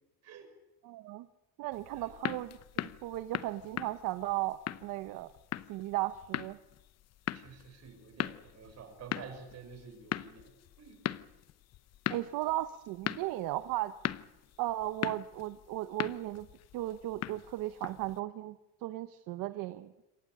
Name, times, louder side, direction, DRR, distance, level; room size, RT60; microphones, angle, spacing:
voice 1, 0.8-1.3 1.6-5.3 5.7-6.6 12.1-13.9 14.6-16.5 16.7-19.9, right 16 dB, 75° right, 11 dB, 1.0 m, -36 dB
sound 1, 1.7-18.2, left 13 dB, 45° left, 0.8 m, -40 dB
voice 2, 7.3-11.0, right 6 dB, 50° right, 6 dB, 6.0 m, -50 dB
27.0 x 15.0 x 8.9 m, 1.0 s
cardioid pair, 145°, 34 cm